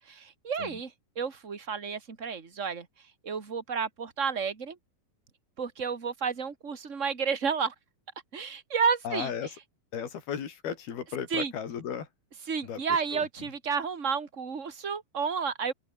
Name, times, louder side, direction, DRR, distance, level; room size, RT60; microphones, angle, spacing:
voice 1, 0.1-0.9 1.2-2.9 3.2-4.8 5.6-7.7 8.3-9.3 11.3-11.5 12.5-15.7, right 6 dB, 25° right, 2.2 m, -31 dB
voice 2, 9.0-9.6 9.9-12.1 12.6-12.8 13.1-13.5, left 8 dB, 90° left, 5.1 m, -35 dB
open air
omnidirectional pair, 4.3 m